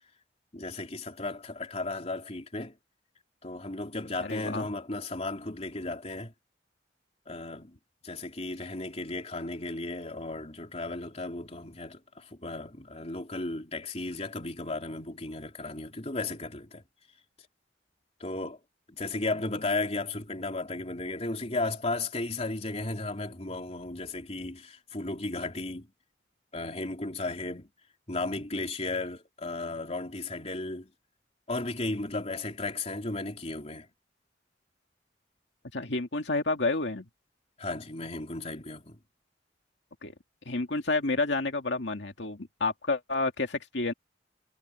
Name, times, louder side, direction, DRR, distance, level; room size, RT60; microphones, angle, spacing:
voice 1, 0.5-2.7 3.4-6.3 7.3-7.8 8.0-16.8 18.2-18.6 18.9-25.9 26.5-27.7 28.1-30.9 31.5-33.9 37.6-39.0, left 2 dB, 35° left, 3.6 m, -35 dB
voice 2, 4.2-4.7 35.7-37.1 40.0-40.1 40.5-43.9, left 3 dB, 75° left, 2.2 m, -30 dB
head